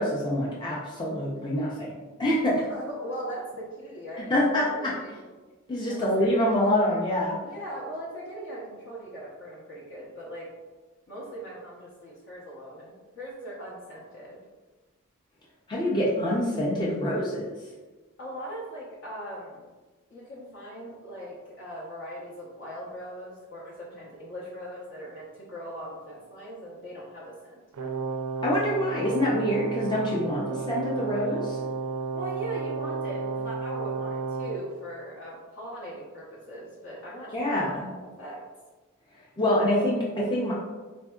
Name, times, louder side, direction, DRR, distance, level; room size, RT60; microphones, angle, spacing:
voice 1, 0.0-1.9 2.2-2.5 4.3-4.9 5.7-7.4 15.7-17.4 28.4-31.6 37.3-37.9 39.4-40.5, left 1 dB, 20° left, -6 dB, 0.4 m, -26 dB
voice 2, 2.7-5.2 5.9-6.3 7.4-10.5 11.1-14.4 18.2-19.6 20.1-27.6 30.2-30.4 32.1-37.9 38.2-38.4, right 1 dB, 60° left, -6 dB, 0.7 m, -40 dB
Brass instrument, 27.7-34.6, right 4 dB, 85° right, 0.4 m, -32 dB
4.2 x 2.6 x 2.2 m, 1.3 s
head